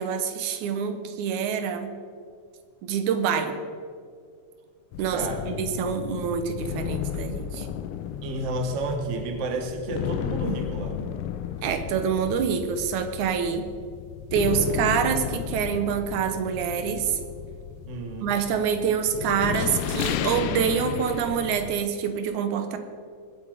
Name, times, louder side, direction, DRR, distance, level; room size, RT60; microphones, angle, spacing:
voice 1, 0.0-1.9 2.8-3.6 5.0-7.7 11.6-13.7 14.3-17.2 18.2-22.8, right 7 dB, 85° right, 8 dB, 2.4 m, -26 dB
sound 1, 4.9-21.8, left 10 dB, 85° left, 1.3 m, -33 dB
voice 2, 8.2-11.1 17.8-18.3, right 2 dB, 45° right, 5 dB, 1.0 m, -31 dB
20.0 x 8.6 x 5.0 m, 2.2 s
omnidirectional pair, 3.3 m